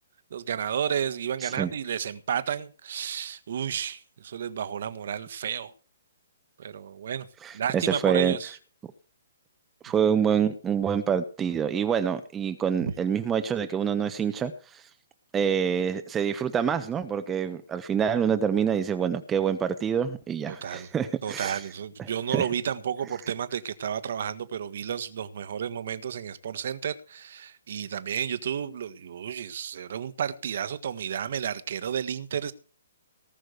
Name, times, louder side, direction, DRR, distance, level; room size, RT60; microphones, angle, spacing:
voice 1, 0.3-5.7 6.6-7.3 7.5-8.6 12.8-12.9 20.5-20.9 21.2-32.5, right 8 dB, 60° right, 1.5 m, -32 dB
voice 2, 7.4-8.4 9.8-14.8 15.3-21.6 22.3-22.5, right 7 dB, 15° right, 1.0 m, -26 dB
19.0 x 6.3 x 6.7 m
figure-of-eight pair, 130°, 0 cm